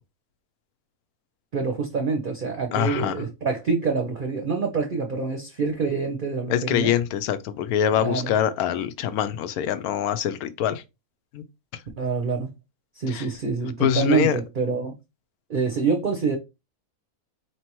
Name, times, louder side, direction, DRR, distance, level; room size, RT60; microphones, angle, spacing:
voice 1, 1.5-6.9 8.0-8.3 12.0-12.5 13.0-14.9 15.5-16.4, right 4 dB, 50° right, 0.6 m, -26 dB
voice 2, 2.7-3.1 6.5-10.8 11.3-11.4 11.7-11.8 13.1-13.3 13.8-14.4, left 10 dB, 80° left, 1.1 m, -24 dB
4.5 x 3.3 x 3.0 m
omnidirectional pair, 1.6 m